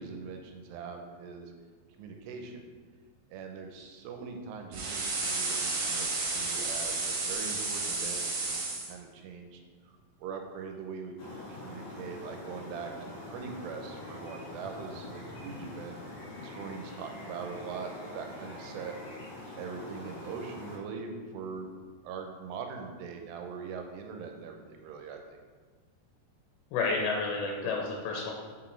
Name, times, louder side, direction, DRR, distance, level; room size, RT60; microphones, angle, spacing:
voice 1, 0.0-1.5 2.0-2.6 3.3-6.1 6.3-9.6 9.9-11.4 11.6-15.9 16.4-19.0 19.6-25.4 27.6-27.7, right 5 dB, 80° right, 4 dB, 2.7 m, -42 dB
sound 1, 4.7-8.9, right 3 dB, 65° right, 2.7 m, -32 dB
sound 2, 11.2-20.8, left 2 dB, 70° left, 1.6 m, -44 dB
voice 2, 26.7-28.3, left 4 dB, 85° left, 0 dB, 2.8 m, -30 dB
6.1 x 4.1 x 4.4 m, 1.5 s
omnidirectional pair, 4.9 m